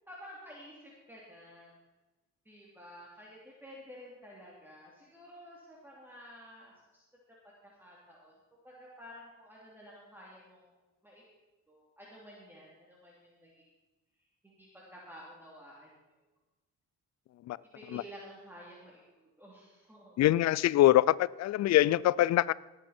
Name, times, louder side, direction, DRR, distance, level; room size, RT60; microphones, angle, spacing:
voice 1, 0.1-1.7 2.4-7.0 7.6-8.3 8.6-10.7 11.0-11.2 11.7-13.6 14.4-15.9 17.7-20.2, equal, 5° right, 3.1 m, -52 dB
voice 2, 20.2-22.5, left 14 dB, 60° left, 0.5 m, -24 dB
18.5 x 8.5 x 4.4 m
cardioid pair, 90°, 30 cm